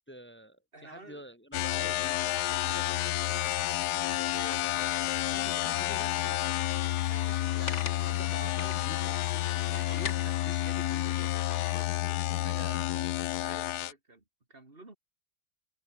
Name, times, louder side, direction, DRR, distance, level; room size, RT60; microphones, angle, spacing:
voice 1, 0.1-2.8 3.2-3.5 4.6-4.9 5.3-6.6 7.4-11.3 12.2-13.1, right 1 dB, 10° left, 0.5 m, -48 dB
voice 2, 0.7-1.3 2.6-3.5 4.0-5.7 6.5-6.8 7.1-7.4 11.5-12.6 13.4-14.2 14.5-15.0, right 2 dB, 30° right, 3.4 m, -51 dB
sound 1, 1.5-13.9, left 15 dB, 70° left, 1.0 m, -30 dB
sound 2, 2.0-11.9, left 5 dB, 40° left, 1.8 m, -44 dB
omnidirectional pair, 2.0 m